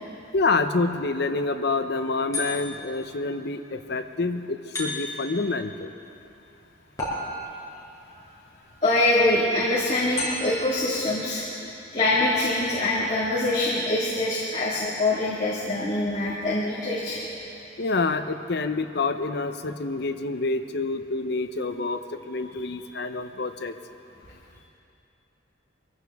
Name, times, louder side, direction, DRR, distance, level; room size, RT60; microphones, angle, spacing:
voice 1, 0.3-5.9 17.8-22.0 22.3-23.7, left 3 dB, 55° left, 9 dB, 0.7 m, -27 dB
sound 1, 2.3-3.0 4.7-5.4 7.0-7.7 10.2-10.8, left 1 dB, 20° left, 4.4 m, -32 dB
voice 2, 8.8-11.4 11.9-17.2 22.5-22.6, left 2 dB, 35° left, -7 dB, 1.9 m, -24 dB
23.5 x 15.5 x 3.5 m, 2.9 s
head